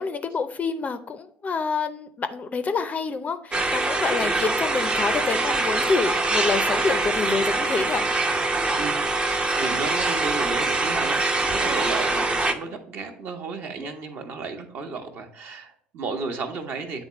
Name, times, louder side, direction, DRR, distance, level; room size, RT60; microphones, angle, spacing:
voice 1, 0.0-8.0 9.6-9.8 13.8-13.9, left 4 dB, 30° left, 10 dB, 0.6 m, -27 dB
sound 1, 3.5-12.5, right 2 dB, 20° right, 0.6 m, -24 dB
voice 2, 8.6-17.0, right 4 dB, 45° right, 4 dB, 1.0 m, -33 dB
9.1 x 3.7 x 3.0 m, 0.64 s
figure-of-eight pair, 60°, 5 cm